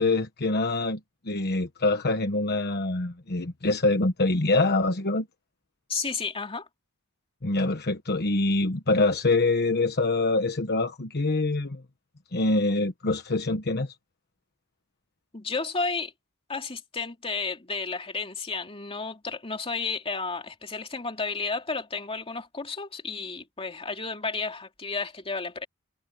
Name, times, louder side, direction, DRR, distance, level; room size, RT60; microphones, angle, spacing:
voice 1, 0.0-5.3 7.4-11.8 12.3-13.9, left 2 dB, 50° left, 1.2 m, -25 dB
voice 2, 5.9-6.7 15.3-16.1 16.5-25.7, left 4 dB, 25° left, 2.7 m, -32 dB
head